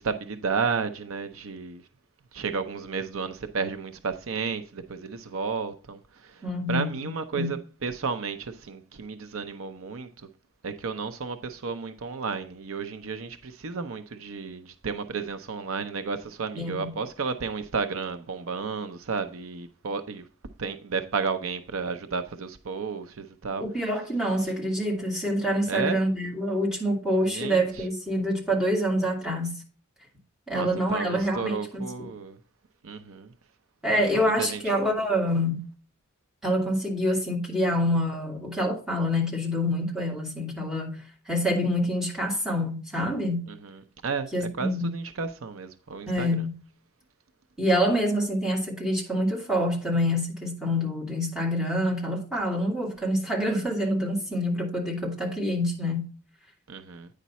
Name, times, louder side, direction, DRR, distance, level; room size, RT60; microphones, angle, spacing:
voice 1, 0.0-1.8 2.3-10.3 10.6-20.3 20.6-23.6 25.7-26.0 27.2-27.9 30.5-32.4 32.8-33.3 33.9-34.9 43.5-44.3 44.6-46.5 56.7-57.1, right 5 dB, 75° right, 0.6 m, -32 dB
voice 2, 6.4-7.5 16.6-16.9 23.6-29.6 30.5-32.1 33.8-35.6 36.4-43.4 44.3-44.9 46.1-46.5 47.6-56.1, equal, 5° right, 2.2 m, -26 dB
9.2 x 5.2 x 4.1 m
head